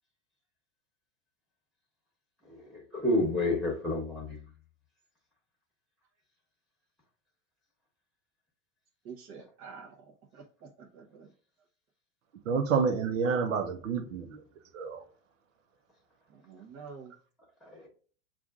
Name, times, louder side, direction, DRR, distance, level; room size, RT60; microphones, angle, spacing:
voice 1, 2.5-4.4 17.7-17.9, left 1 dB, ahead, 1.2 m, -30 dB
voice 2, 9.0-11.3 16.3-17.1, right 5 dB, 45° right, 0.8 m, -48 dB
voice 3, 12.4-14.4 14.7-15.0, right 5 dB, 90° right, 0.8 m, -29 dB
6.9 x 2.5 x 2.4 m
hypercardioid pair, 105°, 38 cm